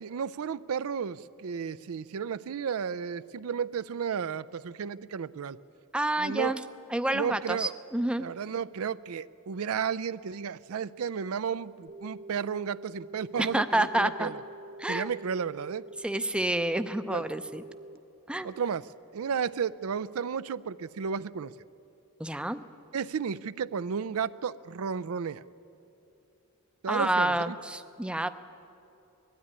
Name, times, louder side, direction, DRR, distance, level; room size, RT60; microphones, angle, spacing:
voice 1, 0.0-5.6 6.2-6.6 7.1-7.8 8.2-14.4 14.9-15.8 17.1-17.3 18.4-18.8 19.1-21.5 22.9-25.4 26.8-27.6, right 6 dB, 75° right, 16 dB, 0.4 m, -33 dB
voice 2, 5.9-6.6 6.9-8.3 13.4-14.3 14.8-15.1 16.0-17.6 18.3-18.5 22.2-22.6 26.9-28.3, right 1 dB, 5° right, 9 dB, 0.5 m, -28 dB
sound 1, 11.9-18.0, right 2 dB, 45° right, 0.7 m, -46 dB
20.5 x 13.0 x 9.7 m, 2.8 s
head